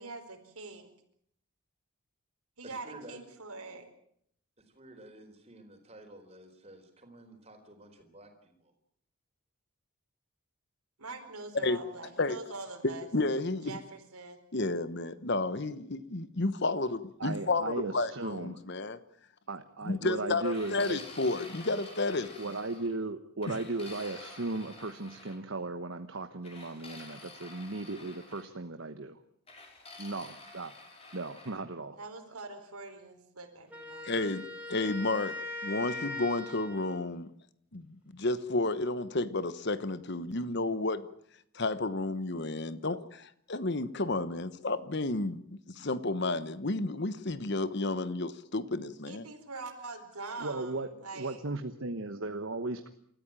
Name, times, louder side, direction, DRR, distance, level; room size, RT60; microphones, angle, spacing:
voice 1, 0.0-0.9 2.6-3.9 11.0-13.1 13.6-14.4 32.0-34.1 49.0-51.4, right 3 dB, 90° right, 5 dB, 4.5 m, -44 dB
voice 2, 2.6-3.3 4.8-8.7, right 1 dB, 30° right, 5 dB, 4.3 m, -52 dB
voice 3, 13.1-13.8 14.5-19.0 19.9-22.3 34.0-37.3 37.7-41.1 41.5-49.3, left 2 dB, 50° left, 14 dB, 1.1 m, -32 dB
voice 4, 17.2-18.6 19.5-21.0 22.4-29.2 30.0-30.7 31.1-32.0 50.4-50.9 51.1-52.9, right 2 dB, 60° right, 8 dB, 1.2 m, -36 dB
sound 1, 20.4-22.9 23.4-25.4 26.4-28.5 29.5-31.6, left 3 dB, 25° left, 5.0 m, -49 dB
Wind instrument woodwind instrument, 33.7-37.1, left 2 dB, 5° right, 4.2 m, -40 dB
28.5 x 14.0 x 8.9 m, 0.69 s
head